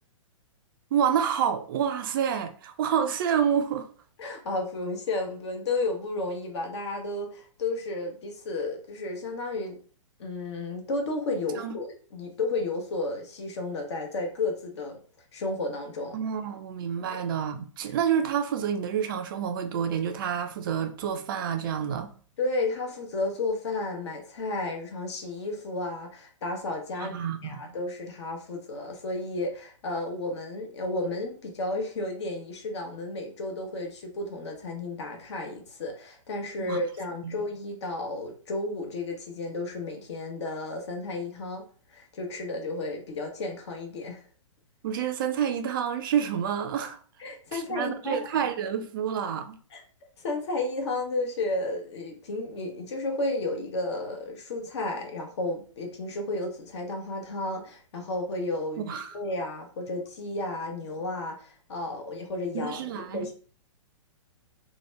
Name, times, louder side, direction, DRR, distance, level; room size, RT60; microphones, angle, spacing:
voice 1, 0.9-3.9 11.6-11.7 16.1-22.1 27.0-27.7 36.6-36.8 37.2-37.4 44.8-47.0 47.5-49.6 58.8-59.1 62.5-63.3, right 8 dB, 40° right, 0.4 m, -28 dB
voice 2, 4.2-9.8 10.2-15.0 15.3-16.2 17.1-17.2 22.4-41.6 41.9-44.2 47.2-48.5 49.7-49.8 50.2-63.3, left 2 dB, 55° left, 0.9 m, -32 dB
2.8 x 2.2 x 3.1 m
figure-of-eight pair, 120°, 17 cm